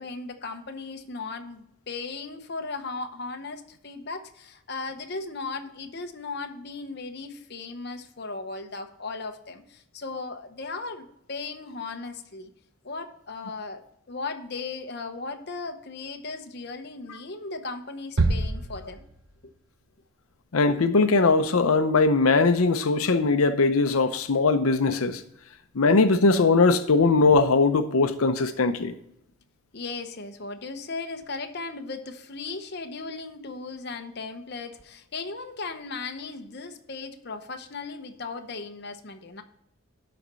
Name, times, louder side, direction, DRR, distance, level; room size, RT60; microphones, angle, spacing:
voice 1, 0.0-12.5 12.8-13.8 14.1-19.0 19.4-19.5 29.7-39.4, left 3 dB, 50° left, 0.9 m, -37 dB
sound 1, 18.2-19.6, right 2 dB, 85° right, 1.0 m, -26 dB
voice 2, 20.5-25.2 25.7-28.9, left 3 dB, 90° left, 0.7 m, -20 dB
11.0 x 4.2 x 6.7 m
head